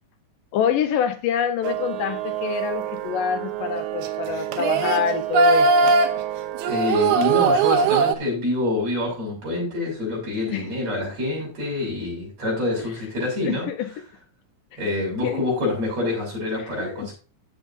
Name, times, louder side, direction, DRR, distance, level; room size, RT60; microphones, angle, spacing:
voice 1, 0.5-5.9 10.5-10.6 13.4-13.9 15.2-15.4 16.5-17.1, left 8 dB, 75° left, 8 dB, 2.5 m, -26 dB
sound 1, 1.6-8.1, right 5 dB, 70° right, 2.1 m, -22 dB
voice 2, 6.7-13.7 14.8-17.1, left 2 dB, 50° right, -3 dB, 7.7 m, -26 dB
15.5 x 7.2 x 2.7 m, 0.33 s
omnidirectional pair, 3.9 m